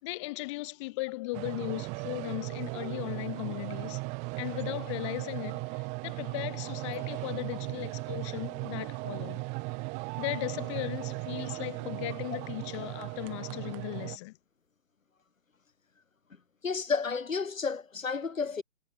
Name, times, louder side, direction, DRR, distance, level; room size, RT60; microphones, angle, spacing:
voice 1, 0.0-4.0 4.4-9.4 10.2-14.4, left 22 dB, 25° left, 3.4 m, -37 dB
sound 1, 1.3-14.2, right 30 dB, 15° right, 2.8 m, -37 dB
voice 2, 16.6-18.6, left 5 dB, 85° left, 3.2 m, -31 dB
hypercardioid pair, 155°, 39 cm